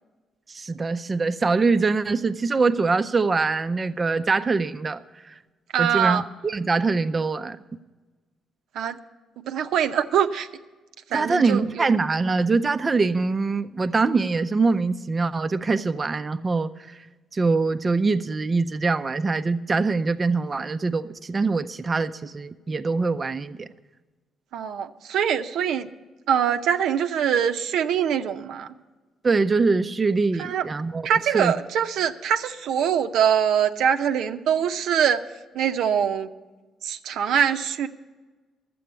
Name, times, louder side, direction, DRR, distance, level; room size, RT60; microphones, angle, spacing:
voice 1, 0.5-5.0 5.2-5.3 5.8-7.6 11.1-17.0 17.3-23.7 29.2-31.1 31.3-31.5, right 4 dB, 30° right, 8 dB, 0.4 m, -23 dB
voice 2, 5.7-6.2 8.7-9.0 9.5-10.5 11.1-11.9 24.5-25.9 26.3-28.7 30.4-30.7 31.0-35.2 35.5-36.3 36.8-37.9, right 8 dB, 80° right, 7 dB, 0.6 m, -23 dB
12.5 x 7.7 x 8.1 m, 1.3 s
cardioid pair, 90°, 0 cm